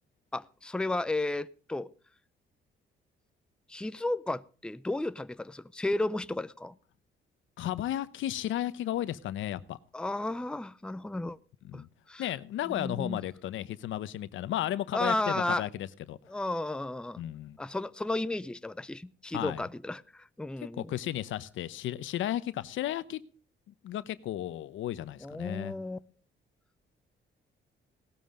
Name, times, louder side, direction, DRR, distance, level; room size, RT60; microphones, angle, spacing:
voice 1, 0.3-1.9 3.7-6.7 9.9-11.4 11.7-12.3 12.7-13.2 14.9-15.7 16.3-17.2 17.6-20.9 25.2-26.0, left 2 dB, 5° left, 0.6 m, -33 dB
voice 2, 7.6-9.8 11.6-11.9 12.2-16.2 17.2-17.6 19.3-19.6 20.8-23.2 23.8-25.7, left 12 dB, 80° left, 0.8 m, -34 dB
17.0 x 12.5 x 3.7 m
cardioid pair, 90°, 20 cm